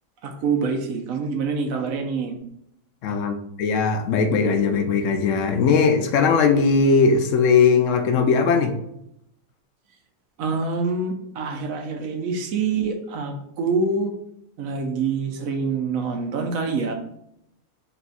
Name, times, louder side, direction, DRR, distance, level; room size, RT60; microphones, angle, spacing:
voice 1, 0.2-2.4 10.4-14.1 14.6-17.0, right 4 dB, 75° right, 4 dB, 1.1 m, -26 dB
voice 2, 3.0-8.7, left 5 dB, 70° left, 6 dB, 0.9 m, -19 dB
4.1 x 2.3 x 4.0 m, 0.75 s
omnidirectional pair, 1.5 m